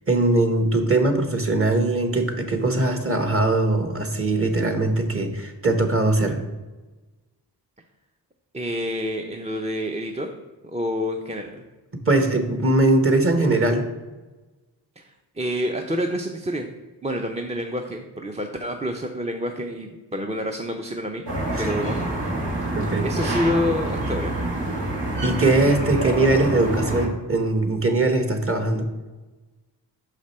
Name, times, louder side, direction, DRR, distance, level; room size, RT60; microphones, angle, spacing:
voice 1, 0.1-6.4 12.1-13.8 21.6-21.7 22.7-23.1 25.2-28.8, right 2 dB, 30° right, 6 dB, 1.2 m, -21 dB
voice 2, 8.5-10.3 10.6-11.6 15.0-15.1 15.4-16.7 17.0-21.2 21.6-22.1 22.4-22.7 23.0-24.3, equal, 15° right, 3 dB, 0.6 m, -28 dB
sound 1, 21.3-27.1, right 1 dB, 80° right, 1.4 m, -27 dB
5.8 x 5.0 x 4.2 m, 1.2 s
cardioid pair, 50°, 42 cm